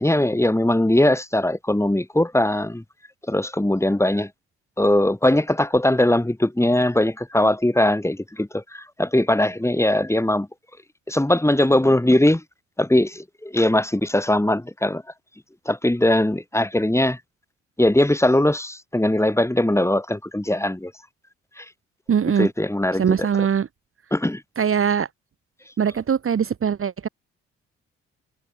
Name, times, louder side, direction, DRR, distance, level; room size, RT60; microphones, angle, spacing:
voice 1, 0.0-2.8 3.3-4.3 4.8-10.5 11.1-12.4 12.8-15.0 15.7-17.2 17.8-20.9 21.6-21.7 22.4-23.3 24.1-24.4, left 1 dB, 10° left, 3.6 m, -20 dB
voice 2, 22.1-22.5 22.9-23.7 24.6-25.1 25.8-27.1, right 7 dB, 45° right, 1.6 m, -21 dB
hypercardioid pair, 45°, 31 cm